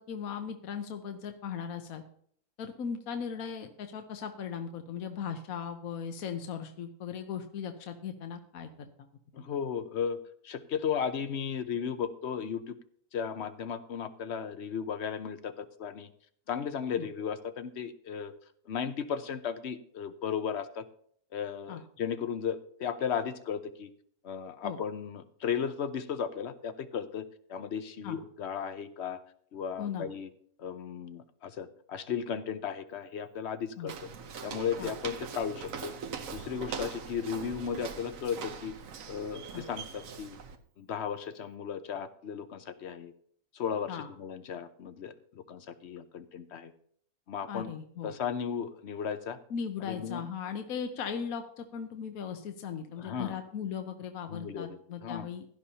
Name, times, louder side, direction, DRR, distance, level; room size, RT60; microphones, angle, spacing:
voice 1, 0.0-2.0 2.6-8.7 9.4-9.5 17.0-17.1 21.7-21.8 24.6-24.8 28.0-28.2 29.8-30.1 33.8-33.9 34.8-34.9 39.5-39.6 43.9-44.1 47.5-48.1 49.5-55.5, left 7 dB, 70° left, 6 dB, 1.3 m, -38 dB
voice 2, 9.3-10.2 10.4-12.7 13.1-16.1 16.5-18.3 18.7-20.8 21.3-23.9 24.2-29.2 29.5-30.3 30.6-33.9 34.4-35.9 36.3-38.7 39.1-40.4 40.8-43.1 43.5-46.7 47.3-47.7 48.0-49.4 49.9-50.3 53.0-53.4 54.3-55.3, left 7 dB, 55° left, 11 dB, 0.9 m, -35 dB
Walk footsteps, 33.9-40.6, right 6 dB, 65° right, 1.3 m, -41 dB
16.5 x 11.5 x 2.9 m, 0.62 s
omnidirectional pair, 1.5 m